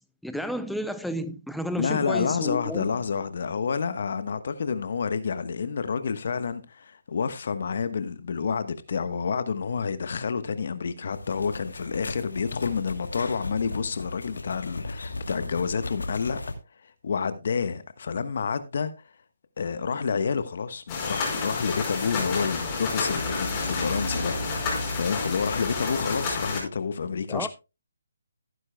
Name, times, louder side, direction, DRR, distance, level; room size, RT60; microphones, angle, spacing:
voice 1, 0.2-2.9 27.3-27.5, equal, ahead, 0.6 m, -31 dB
voice 2, 1.8-16.4 16.8-18.9 19.6-27.5, left 5 dB, 55° left, 1.1 m, -29 dB
sound 1, 11.1-16.5, left 2 dB, 85° left, 2.6 m, -37 dB
sound 2, 20.9-26.6, left 3 dB, 25° left, 4.8 m, -29 dB
16.5 x 9.8 x 2.2 m
hypercardioid pair, 155°, 0 cm